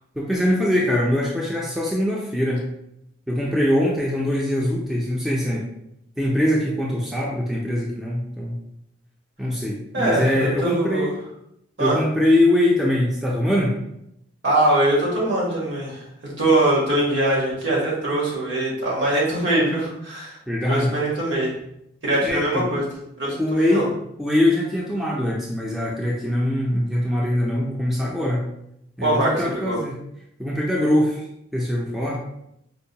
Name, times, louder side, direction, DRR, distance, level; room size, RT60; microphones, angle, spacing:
voice 1, 0.2-2.6 3.3-5.6 6.2-8.6 9.4-11.1 11.8-13.8 20.5-20.9 22.2-22.6 23.4-23.8 24.2-28.4 29.0-29.9 30.4-31.2 31.5-32.2, left 1 dB, ahead, -4 dB, 0.4 m, -22 dB
voice 2, 9.9-11.1 11.8-12.0 14.4-20.4 20.6-21.5 22.0-22.8 23.2-23.8 29.0-29.8, right 1 dB, 70° right, -4 dB, 1.2 m, -22 dB
4.5 x 2.1 x 2.7 m, 0.79 s
head